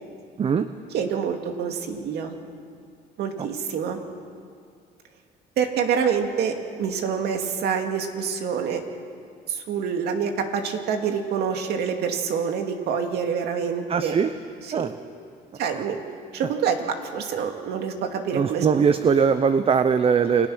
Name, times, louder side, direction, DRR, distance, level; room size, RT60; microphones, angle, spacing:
voice 1, 0.9-2.3 3.2-4.0 5.6-8.8 9.5-14.2 14.7-14.9 15.6-16.0 16.3-18.8, right 7 dB, 75° right, 4 dB, 2.4 m, -26 dB
voice 2, 13.9-14.3 14.7-14.9 15.7-15.8 18.3-20.5, right 6 dB, 35° right, 10 dB, 0.8 m, -20 dB
29.0 x 19.5 x 6.4 m, 2.3 s
cardioid pair, 110°, 17 cm